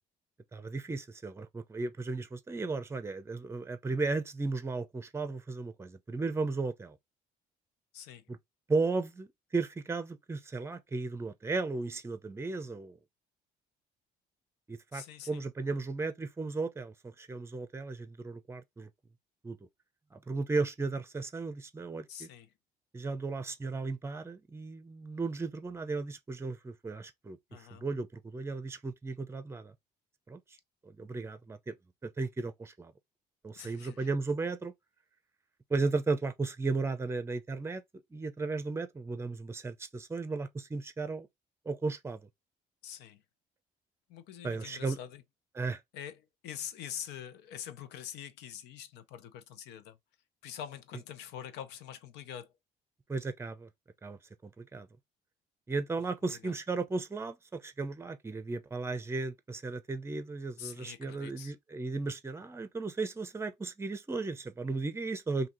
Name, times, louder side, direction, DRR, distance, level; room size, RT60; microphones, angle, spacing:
voice 1, 0.5-7.0 8.3-8.4 8.7-13.0 14.7-18.9 19.4-19.6 20.1-22.3 22.9-29.7 30.3-30.4 30.8-31.8 32.0-32.9 33.4-34.7 35.7-37.8 38.1-41.3 41.7-42.3 44.4-45.0 45.6-45.8 53.1-53.7 54.0-54.9 55.7-65.5, right 3 dB, 15° right, 0.6 m, -35 dB
voice 2, 7.9-8.3 14.9-15.4 22.1-22.5 27.5-27.9 33.5-34.1 42.8-43.2 44.1-45.2 45.9-50.0 50.4-52.5 56.3-56.5 60.6-61.5, left 9 dB, 90° left, 0.6 m, -45 dB
2.8 x 2.8 x 3.9 m
cardioid pair, 110°, 17 cm